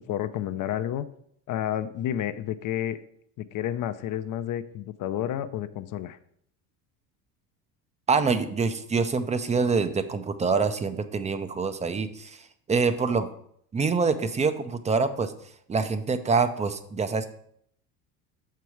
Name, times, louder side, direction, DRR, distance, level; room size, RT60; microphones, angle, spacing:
voice 1, 0.1-1.0 1.5-3.0 3.4-6.2, left 11 dB, 45° left, 12 dB, 0.5 m, -30 dB
voice 2, 8.1-12.4 12.7-13.3 13.7-15.3 15.7-17.3, right 4 dB, 15° right, 11 dB, 0.4 m, -25 dB
6.9 x 4.6 x 4.8 m, 0.69 s
supercardioid pair, 90°, 46 cm